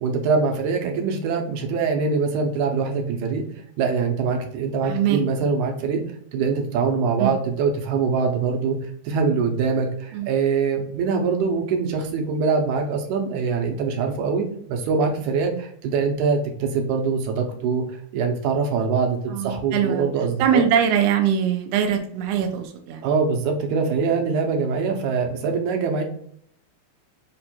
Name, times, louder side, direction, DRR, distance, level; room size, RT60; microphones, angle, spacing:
voice 1, 0.0-3.4 3.8-6.0 6.3-8.8 9.1-20.6 23.0-26.0, right 5 dB, 90° right, 3 dB, 2.2 m, -23 dB
voice 2, 4.8-5.2 7.2-7.3 10.1-10.3 19.3-20.1 20.4-23.0, right 8 dB, 75° right, 4 dB, 1.5 m, -22 dB
5.2 x 2.2 x 4.2 m, 0.65 s
omnidirectional pair, 3.4 m